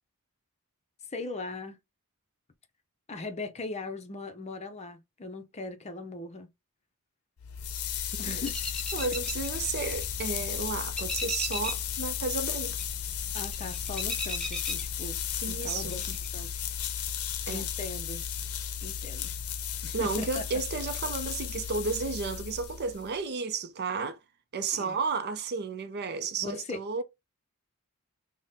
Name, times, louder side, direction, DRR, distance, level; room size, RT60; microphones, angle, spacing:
voice 1, 1.1-1.8 3.1-6.5 8.2-8.5 13.3-15.2 15.5-16.5 17.5-18.2 18.8-19.3 19.8-20.4 24.7-25.0 26.4-26.8, left 3 dB, 30° left, 0.6 m, -39 dB
sound 1, 7.4-23.2, left 9 dB, 85° left, 0.6 m, -34 dB
sound 2, 8.4-10.4 10.7-11.9 12.2-15.4 15.7-16.3, left 1 dB, 5° left, 0.9 m, -37 dB
voice 2, 8.9-12.8 15.4-16.0 17.5-17.7 19.9-24.2 24.5-27.0, right 4 dB, 50° right, 0.5 m, -32 dB
4.0 x 2.1 x 3.4 m
head